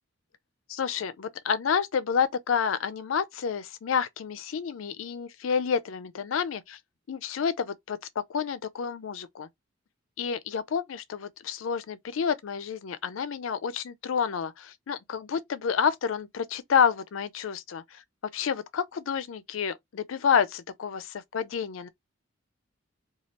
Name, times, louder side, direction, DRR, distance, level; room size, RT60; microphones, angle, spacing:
voice 1, 0.7-6.8 7.1-8.0 8.3-9.5 10.2-18.0 18.3-21.9, left 7 dB, 80° left, 0.4 m, -29 dB
3.1 x 2.3 x 2.8 m
head